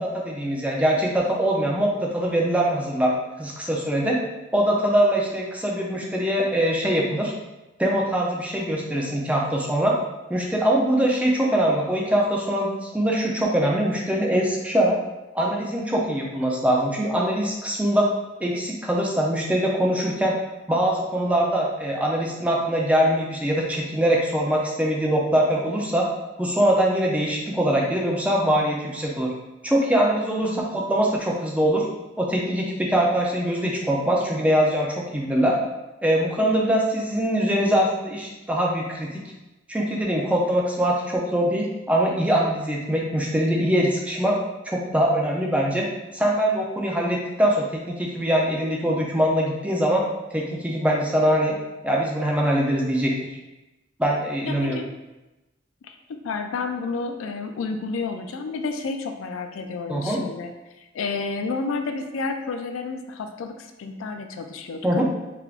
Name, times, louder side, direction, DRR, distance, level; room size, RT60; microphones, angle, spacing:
voice 1, 0.0-4.2 4.5-7.3 7.8-9.9 10.3-15.0 15.3-18.1 18.4-20.3 20.7-26.1 26.4-29.3 29.6-31.9 32.2-35.6 36.0-39.2 39.7-44.4 44.7-45.9 46.1-50.0 50.3-51.6 51.8-53.1 54.0-54.8 59.9-60.2 64.8-65.1, right 1 dB, 5° right, -2 dB, 0.4 m, -23 dB
voice 2, 30.4-30.7 54.5-54.9 55.8-56.0 56.2-60.5 60.9-65.1, left 4 dB, 75° left, 5 dB, 0.3 m, -30 dB
3.5 x 3.4 x 2.4 m, 1.0 s
head